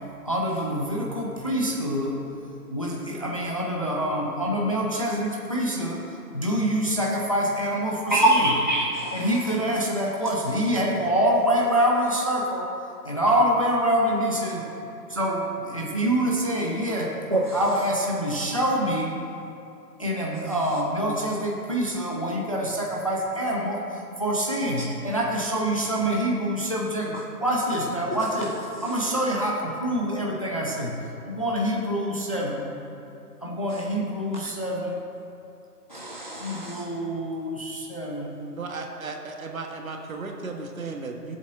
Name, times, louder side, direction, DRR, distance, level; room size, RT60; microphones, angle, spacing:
voice 1, 0.3-2.2 2.7-6.0 6.3-8.5 9.1-12.7 13.0-14.6 15.1-17.1 17.5-19.1 20.0-23.8 24.2-27.1 27.4-28.6 28.8-30.9 31.3-32.6 33.4-35.0 36.4-38.4, equal, 20° left, -3 dB, 0.6 m, -26 dB
voice 2, 8.1-9.2 17.3-17.4 35.9-36.8, right 1 dB, 30° right, -2 dB, 0.5 m, -23 dB
voice 3, 38.6-41.4, right 3 dB, 55° right, 2 dB, 1.5 m, -35 dB
16.5 x 7.5 x 3.7 m, 2.8 s
figure-of-eight pair, 160°, 48 cm